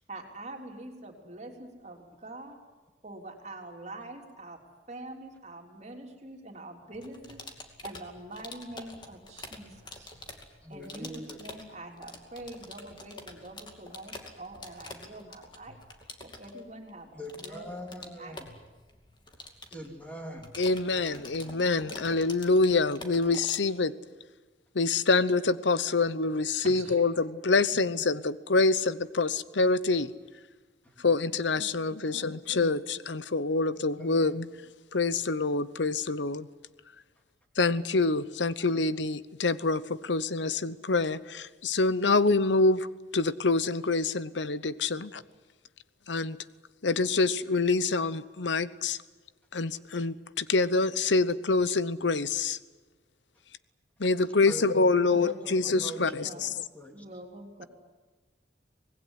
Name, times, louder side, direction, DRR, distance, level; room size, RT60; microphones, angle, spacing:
voice 1, 0.1-2.6 3.0-4.6 4.9-7.4 7.8-10.1 10.7-15.8 16.2-17.7 17.9-18.4 21.8-22.2 26.6-27.3 31.3-32.3 54.7-56.5 56.9-57.7, right 2 dB, 40° right, 2 dB, 3.5 m, -45 dB
sound 1, 6.9-23.6, left 2 dB, 25° left, 2.5 m, -47 dB
voice 2, 10.6-11.4 17.1-18.4 19.7-21.7 30.8-30.9 33.7-34.2 54.4-54.6 54.9-56.4 56.7-57.0, equal, 10° left, 2 dB, 3.2 m, -43 dB
voice 3, 20.6-23.9 24.7-30.1 31.0-34.5 34.9-36.5 37.6-42.9 43.1-45.2 46.1-46.4 46.8-49.0 49.5-52.6 54.0-56.3, left 3 dB, 75° left, 16 dB, 0.9 m, -26 dB
25.0 x 19.0 x 9.9 m, 1.2 s
head